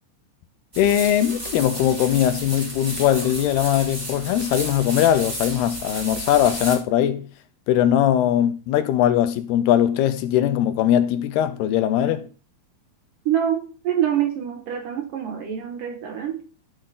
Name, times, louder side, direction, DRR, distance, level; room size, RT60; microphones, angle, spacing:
sound 1, 0.7-6.8, right 1 dB, 15° right, 2.0 m, -33 dB
voice 1, 0.8-7.3 7.7-12.3, left 11 dB, 80° left, 2.9 m, -20 dB
voice 2, 13.3-16.4, right 10 dB, 65° right, 2.6 m, -25 dB
12.0 x 6.6 x 3.9 m
omnidirectional pair, 4.7 m